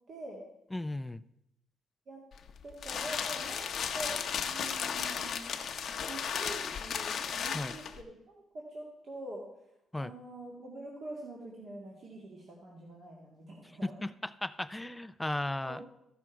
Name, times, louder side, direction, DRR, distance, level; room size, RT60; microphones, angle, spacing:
voice 1, 0.1-0.4 2.1-2.2 2.6-5.5 5.9-9.5 10.0-13.9 15.6-15.9, right 1 dB, 55° right, -3 dB, 2.0 m, -45 dB
voice 2, 0.7-1.2 7.5-7.8 9.9-10.1 13.8-15.8, left 1 dB, 10° left, 15 dB, 0.4 m, -36 dB
sound 1, 2.3-8.0, left 7 dB, 60° left, 0.8 m, -35 dB
14.0 x 6.2 x 4.5 m, 0.83 s
cardioid pair, 90°, 0 cm